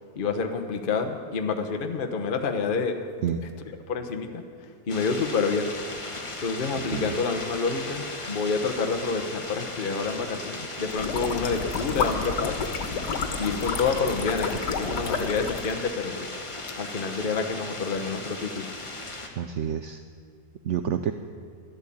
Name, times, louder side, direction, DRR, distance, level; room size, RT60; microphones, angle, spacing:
voice 1, 0.1-3.0 3.9-5.7 6.4-12.7 13.0-16.3 16.8-18.7, left 4 dB, 35° left, 5 dB, 1.1 m, -28 dB
sound 1, 4.9-19.3, left 2 dB, 20° left, 1.3 m, -37 dB
voice 2, 6.7-7.1 19.4-20.0 20.6-21.1, right 8 dB, 65° right, 9 dB, 0.7 m, -28 dB
sound 2, 10.9-15.7, left 4 dB, 80° left, 1.8 m, -30 dB
12.5 x 11.5 x 8.6 m, 2.2 s
omnidirectional pair, 1.8 m